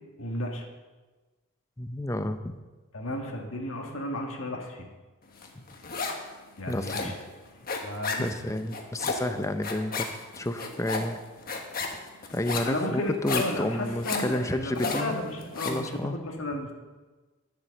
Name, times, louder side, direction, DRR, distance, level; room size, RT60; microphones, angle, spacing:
voice 1, 0.2-0.6 2.9-4.9 6.6-7.1 7.8-8.3 12.6-16.7, left 1 dB, 65° left, 1 dB, 1.8 m, -33 dB
voice 2, 1.8-2.6 6.7-7.2 8.2-10.1 10.4-11.2 12.3-15.2 15.7-16.2, left 1 dB, 15° left, 9 dB, 0.6 m, -30 dB
sound 1, 5.4-6.3 6.6-15.9, left 4 dB, 40° left, 1.3 m, -34 dB
11.5 x 7.6 x 6.5 m, 1.3 s
head